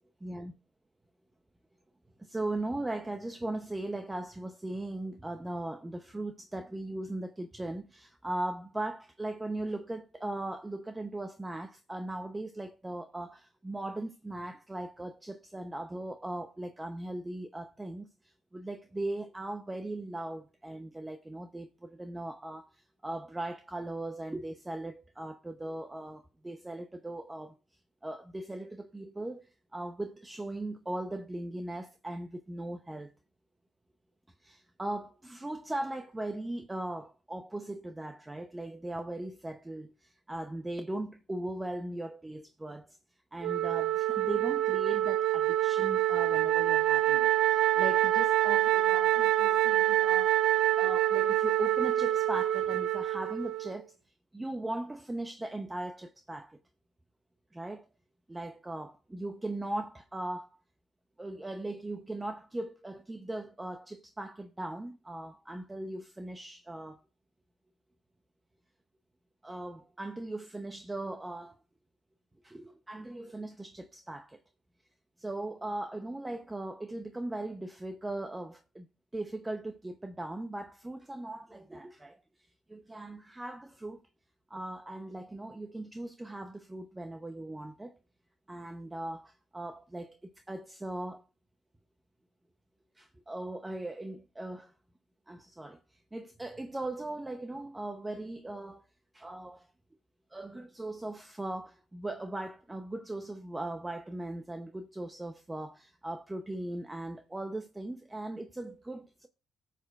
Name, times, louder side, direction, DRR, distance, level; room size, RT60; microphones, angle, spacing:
voice 1, 0.2-0.5 2.2-27.5 28.0-33.1 34.4-43.0 43.3-54.0 54.3-56.6 57.5-57.9 58.3-60.5 61.2-67.0 69.4-71.6 72.4-74.4 75.2-78.9 79.1-82.2 82.7-84.0 84.5-88.0 88.5-91.2 93.0-94.7 95.3-95.8 96.1-98.8 99.1-99.7 100.3-109.3, right 1 dB, 15° right, 0.7 m, -39 dB
Wind instrument woodwind instrument, 43.4-53.8, right 13 dB, 85° right, 0.4 m, -26 dB
19.0 x 6.7 x 2.4 m
cardioid pair, 90°, 0 cm